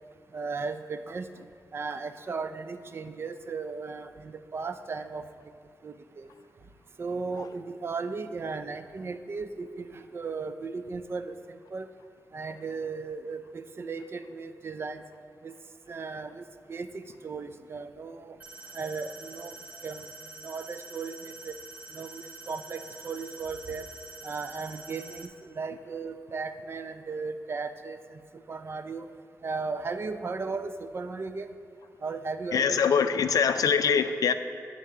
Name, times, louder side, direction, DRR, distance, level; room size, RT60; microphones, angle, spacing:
voice 1, 0.3-1.3 1.7-5.2 5.8-6.3 7.0-11.9 12.3-15.0 15.4-15.5 15.9-18.4 18.7-19.5 19.8-20.1 20.4-21.1 21.4-21.6 21.9-23.9 24.2-28.2 28.5-29.1 29.4-31.5 32.0-33.1, right 4 dB, 40° right, 10 dB, 0.3 m, -36 dB
sound 1, 18.4-25.3, right 2 dB, 25° right, 0.8 m, -46 dB
voice 2, 32.5-34.3, left 7 dB, 85° left, 10 dB, 0.4 m, -23 dB
8.2 x 3.7 x 6.6 m, 2.3 s
wide cardioid pair, 125°, 6 cm